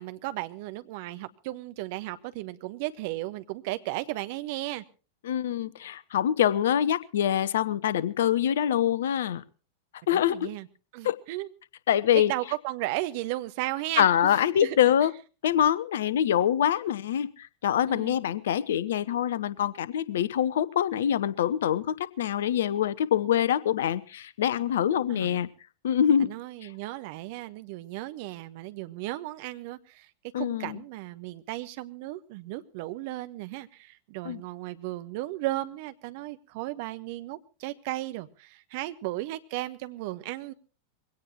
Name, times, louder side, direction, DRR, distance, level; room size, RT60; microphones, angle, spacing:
voice 1, 0.0-4.8 10.1-10.7 10.9-11.5 12.1-14.8 17.9-18.2 25.1-25.4 26.2-30.1 30.4-40.5, right 17 dB, 50° right, 12 dB, 1.1 m, -35 dB
voice 2, 5.2-9.4 10.1-10.5 11.0-11.2 11.9-12.3 14.0-15.1 15.4-25.5 25.8-26.3 30.3-30.8 34.2-34.4, left 10 dB, 60° left, 19 dB, 0.8 m, -25 dB
22.5 x 17.5 x 2.9 m, 0.35 s
figure-of-eight pair, 90°, 0 cm